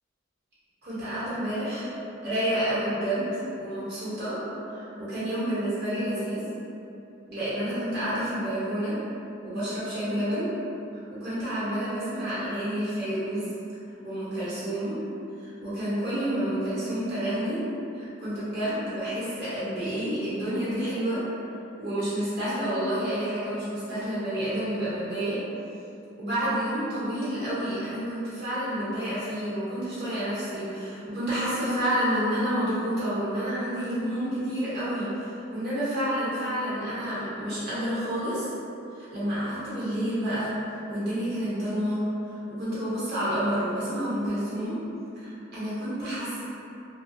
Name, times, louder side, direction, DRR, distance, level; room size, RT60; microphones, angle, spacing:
voice 1, 0.8-1.9 2.2-3.3 3.6-4.4 4.7-6.4 7.3-8.9 9.4-10.5 11.1-13.4 14.0-14.9 15.4-17.6 17.9-21.2 21.8-25.4 26.2-38.5 38.9-42.0 42.3-44.7 45.2-46.4, right 1 dB, 55° right, -10 dB, 1.0 m, -29 dB
2.8 x 2.2 x 2.7 m, 2.7 s
head